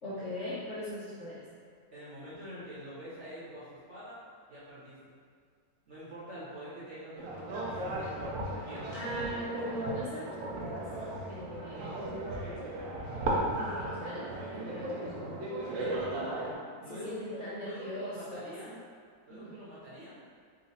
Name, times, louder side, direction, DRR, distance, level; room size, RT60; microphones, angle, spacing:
voice 1, 0.0-1.5 8.9-10.9 11.3-12.3 13.5-15.4 16.8-18.7 19.3-19.6, equal, 55° left, -11 dB, 0.8 m, -40 dB
voice 2, 1.9-4.2 4.5-5.0 5.9-8.3 8.6-8.9 16.8-18.8 19.3-20.2, equal, 45° right, -10 dB, 1.2 m, -45 dB
sound 1, 7.2-16.5, right 1 dB, 80° right, 1.4 m, -36 dB
4.0 x 2.4 x 4.1 m, 2.1 s
omnidirectional pair, 2.0 m